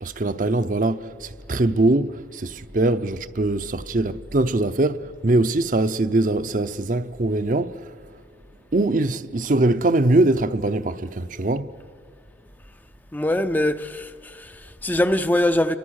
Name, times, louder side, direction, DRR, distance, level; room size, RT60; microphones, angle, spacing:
voice 1, 0.0-7.9 8.7-11.7, right 2 dB, 45° right, 0.7 m, -22 dB
voice 2, 13.1-15.8, left 1 dB, 10° left, 0.5 m, -23 dB
29.5 x 24.0 x 6.4 m
head